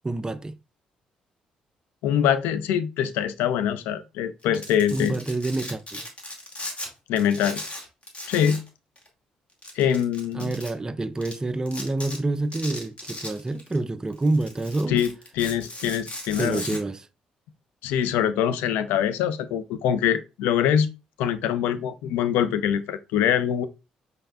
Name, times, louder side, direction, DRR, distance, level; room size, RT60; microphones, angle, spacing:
voice 1, 0.0-0.5 4.9-6.0 10.3-15.0 16.4-17.1, right 2 dB, 20° right, 0.4 m, -27 dB
voice 2, 2.0-5.2 7.1-7.6 8.3-8.6 9.8-10.5 14.9-15.1 15.4-16.7 17.8-20.9 21.2-23.7, left 9 dB, 70° left, 0.4 m, -24 dB
Domestic sounds home sounds, 4.4-6.9 7.2-8.7 9.0-9.1 9.6-10.7 11.2-11.3 11.7-12.2 12.5-13.8 14.1-16.8, left 1 dB, 35° left, 2.2 m, -37 dB
5.3 x 4.0 x 2.3 m
hypercardioid pair, 45°, 3 cm